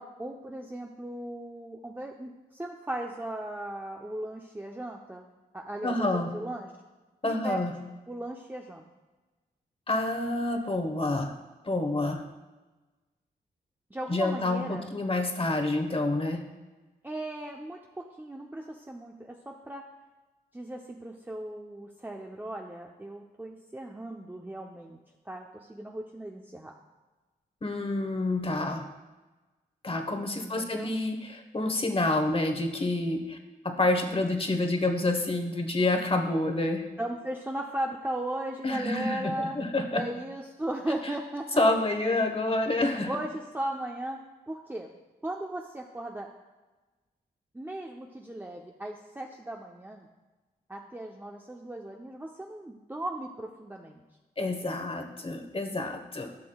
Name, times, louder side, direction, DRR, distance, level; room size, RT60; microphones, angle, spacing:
voice 1, 0.0-5.3 5.5-6.7 7.2-7.6 8.1-8.8 13.9-14.9 17.0-19.9 20.5-25.0 25.3-26.7 30.3-30.9 37.0-39.6 39.9-41.7 43.1-44.9 45.2-46.3 47.5-50.1 50.7-54.0, right 1 dB, 10° right, 0 dB, 0.7 m, -37 dB
voice 2, 5.8-6.3 7.2-7.7 9.9-11.3 11.6-12.2 14.1-16.4 27.6-28.9 29.8-33.4 33.6-36.8 38.6-40.0 41.6-43.1 54.4-56.3, left 2 dB, 30° left, 5 dB, 1.2 m, -28 dB
14.0 x 6.1 x 2.3 m, 1.2 s
cardioid pair, 60°, 18 cm